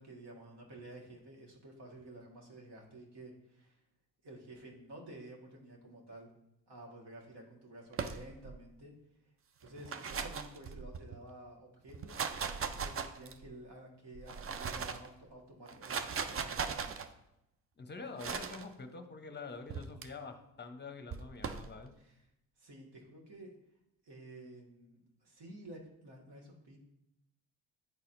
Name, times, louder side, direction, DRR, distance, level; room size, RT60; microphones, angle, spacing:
voice 1, 0.0-3.8 4.2-6.3 6.7-8.9 9.6-12.3 12.7-17.0 22.0-22.2 22.6-23.6 24.0-26.8, right 1 dB, 55° right, -1 dB, 1.8 m, -52 dB
sound 1, 7.9-8.6 9.6-11.2 11.9-13.5 14.1-15.1 15.7-17.1 18.2-18.6 19.7-20.1 21.1-21.7, right 6 dB, 30° right, 0.5 m, -38 dB
voice 2, 17.8-21.9, left 4 dB, 20° left, 7 dB, 0.8 m, -46 dB
9.2 x 4.1 x 2.6 m, 0.83 s
hypercardioid pair, 50°, 48 cm